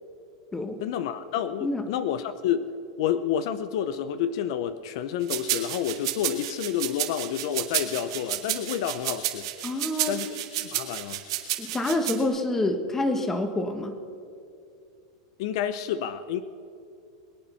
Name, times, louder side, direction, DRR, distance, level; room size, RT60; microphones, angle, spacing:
voice 1, 0.8-9.5 10.1-11.2 15.4-16.4, left 9 dB, 60° left, 12 dB, 0.7 m, -29 dB
sound 1, 5.3-12.2, right 13 dB, 70° right, 2.0 m, -30 dB
voice 2, 9.6-10.2 11.6-14.0, left 2 dB, 15° left, 8 dB, 1.4 m, -27 dB
22.5 x 8.7 x 5.7 m, 2.5 s
supercardioid pair, 135°, 3 cm